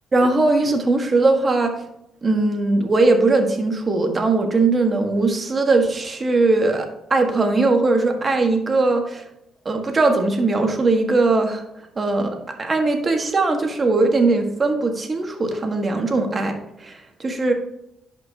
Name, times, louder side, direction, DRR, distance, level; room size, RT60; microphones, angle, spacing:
voice 1, 0.1-1.7 2.2-9.2 9.6-11.6 12.0-16.5 16.8-17.5, right 3 dB, 30° right, 4 dB, 1.5 m, -20 dB
11.0 x 5.3 x 2.8 m, 0.84 s
cardioid pair, 90°, 0 cm